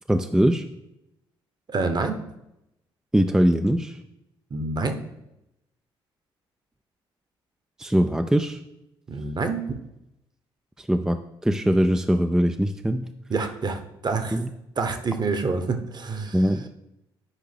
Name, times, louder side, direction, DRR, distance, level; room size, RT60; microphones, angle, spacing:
voice 1, 0.1-0.6 3.1-4.0 7.8-8.6 10.8-13.1 14.3-14.5 16.3-16.7, equal, 5° right, 7 dB, 0.5 m, -22 dB
voice 2, 1.7-2.2 4.5-5.0 9.1-9.7 13.3-14.4 14.8-16.4, right 3 dB, 35° right, 7 dB, 1.1 m, -27 dB
10.0 x 5.5 x 3.4 m, 0.88 s
figure-of-eight pair, 45°, 13 cm